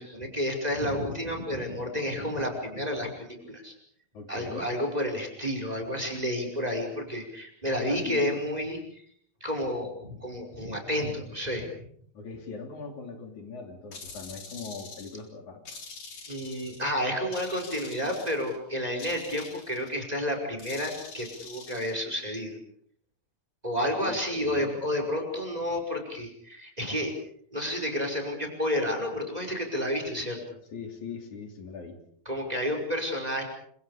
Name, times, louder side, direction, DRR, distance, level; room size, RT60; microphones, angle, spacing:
voice 1, 0.0-3.7 4.3-8.8 9.4-11.7 16.3-22.6 23.6-27.1 27.5-30.4 32.3-33.4, equal, 10° right, 3 dB, 5.4 m, -30 dB
voice 2, 4.1-4.7 7.8-8.4 12.1-15.6 24.1-24.8 30.7-32.0, left 4 dB, 80° left, 4 dB, 4.7 m, -40 dB
sound 1, 13.9-15.2 15.7-16.9 17.3-18.6 19.0-20.0 20.6-21.9, left 4 dB, 60° left, 5.0 m, -45 dB
29.5 x 26.5 x 5.1 m, 0.64 s
omnidirectional pair, 3.3 m